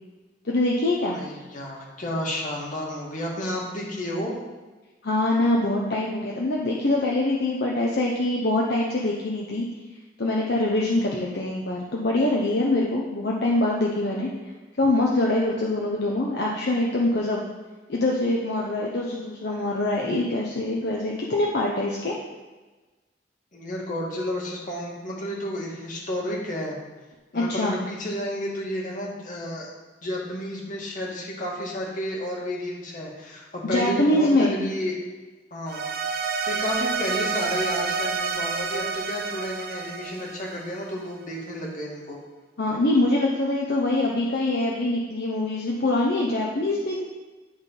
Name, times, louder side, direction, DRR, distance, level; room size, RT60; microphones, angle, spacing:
voice 1, 0.4-1.2 5.0-9.7 10.2-14.3 14.8-17.4 17.9-22.2 27.3-27.8 33.6-34.6 42.6-47.0, left 2 dB, 65° left, -2 dB, 0.9 m, -24 dB
voice 2, 1.0-4.3 23.5-26.8 27.3-29.7 30.0-35.0 35.5-42.2, left 1 dB, 45° left, -2 dB, 1.9 m, -31 dB
sound 1, 35.7-41.0, right 5 dB, 55° right, 0.7 m, -29 dB
10.5 x 3.6 x 5.4 m, 1.2 s
head